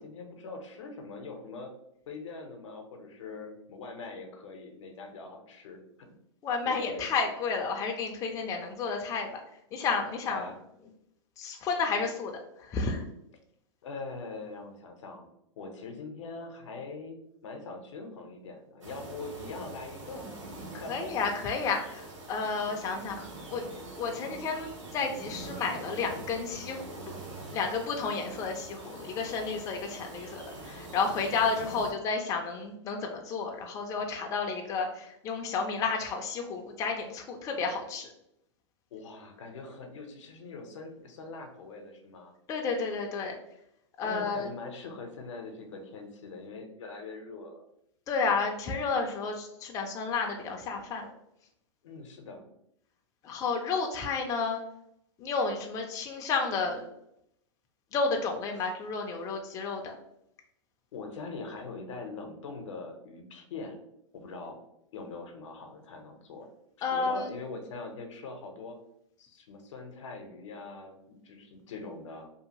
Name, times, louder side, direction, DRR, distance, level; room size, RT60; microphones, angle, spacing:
voice 1, 0.0-1.7 2.1-6.2 6.6-7.1 10.3-10.6 13.8-15.3 15.6-17.2 17.4-20.3 20.6-21.2 31.6-31.9 38.9-42.3 44.0-47.7 51.8-52.5 60.9-63.8 64.1-64.6 64.9-66.5 66.9-68.8 69.2-72.3, left 3 dB, 80° left, 5 dB, 0.7 m, -42 dB
voice 2, 6.4-9.4 9.7-10.5 11.4-12.3 12.6-13.0 20.7-23.6 24.0-27.2 27.5-38.1 42.5-43.4 44.0-44.5 48.1-51.1 53.2-54.6 55.2-56.9 57.9-59.9 66.8-67.3, left 4 dB, 20° left, 2 dB, 0.4 m, -31 dB
sound 1, 18.8-31.9, right 2 dB, 90° right, 0.9 m, -44 dB
2.7 x 2.5 x 2.8 m, 0.77 s
hypercardioid pair, 130°, 16 cm